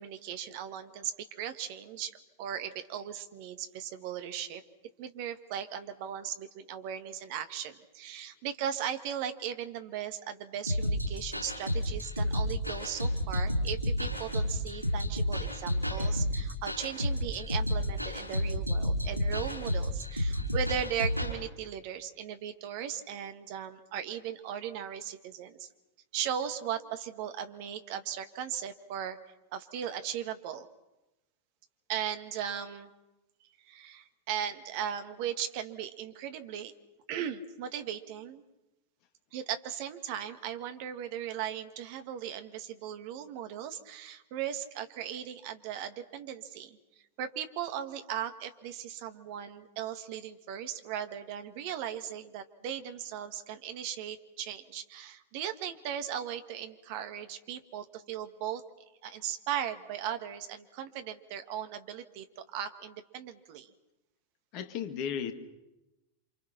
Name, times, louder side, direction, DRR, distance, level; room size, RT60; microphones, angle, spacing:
voice 1, 0.0-4.6 5.0-25.7 26.1-29.2 29.5-30.7 31.9-32.9 33.7-36.7 37.1-38.4 39.3-46.8 47.2-58.6 59.0-63.7, right 9 dB, 50° right, 8 dB, 1.9 m, -37 dB
sound 1, 10.7-21.3, equal, 90° left, 5.3 m, -31 dB
voice 2, 64.5-65.3, left 8 dB, 40° left, 8 dB, 2.3 m, -34 dB
29.5 x 26.5 x 6.0 m, 0.96 s
figure-of-eight pair, 90°, 0 cm